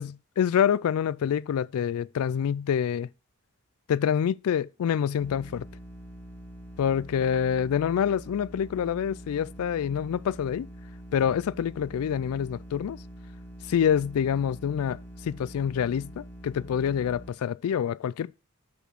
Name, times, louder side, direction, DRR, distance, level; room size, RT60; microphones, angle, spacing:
voice 1, 0.0-3.1 3.9-5.7 6.8-10.7 11.1-13.0 13.7-18.3, left 8 dB, 70° left, 0.3 m, -26 dB
sound 1, 5.2-17.3, right 1 dB, 5° left, 1.7 m, -45 dB
6.1 x 5.8 x 6.1 m
head